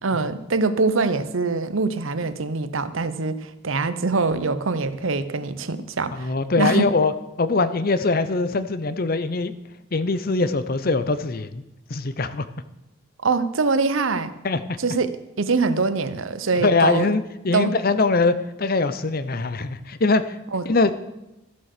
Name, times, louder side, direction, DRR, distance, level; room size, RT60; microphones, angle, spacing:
voice 1, 0.0-6.9 13.2-14.3 14.8-15.1 15.4-17.1 17.5-17.7 20.5-20.6, right 4 dB, 70° right, 13 dB, 0.8 m, -23 dB
voice 2, 6.1-7.1 7.4-9.5 9.9-11.6 11.9-12.5 14.4-14.8 16.6-20.4 20.6-20.9, left 3 dB, 45° left, 13 dB, 0.7 m, -22 dB
13.5 x 7.7 x 6.7 m, 0.94 s
head